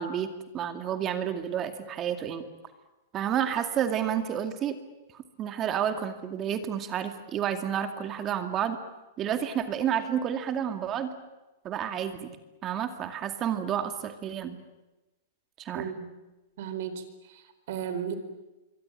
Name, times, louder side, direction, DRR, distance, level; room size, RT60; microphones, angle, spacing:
voice 1, 0.0-2.4 3.1-4.8 5.1-8.8 9.2-11.1 11.6-12.4 12.6-14.6 15.6-15.9, right 9 dB, 30° right, 8 dB, 2.3 m, -30 dB
voice 2, 15.7-16.1 16.6-18.1, right 8 dB, 65° right, 11 dB, 4.3 m, -35 dB
26.5 x 23.5 x 9.1 m, 1.1 s
supercardioid pair, 145°, 0 cm